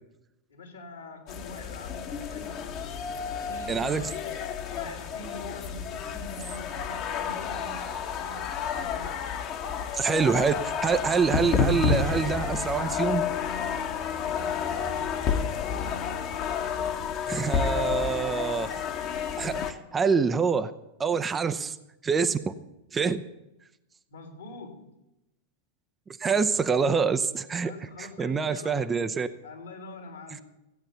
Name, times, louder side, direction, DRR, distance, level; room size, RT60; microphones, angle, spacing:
voice 1, 0.5-2.7 3.4-4.3 4.7-9.3 14.2-15.1 24.1-24.9 27.6-29.0 29.4-30.4, left 2 dB, 70° left, 3 dB, 3.2 m, -44 dB
sound 1, 1.3-19.7, left 6 dB, 35° left, 1.3 m, -30 dB
voice 2, 3.7-4.0 9.9-13.2 17.3-18.7 19.4-20.7 21.0-21.8 22.0-22.5 22.9-23.2 26.2-27.7 28.0-29.3, right 5 dB, 20° right, 10 dB, 0.7 m, -26 dB
15.5 x 8.9 x 6.9 m, 0.91 s
figure-of-eight pair, 90°, 0 cm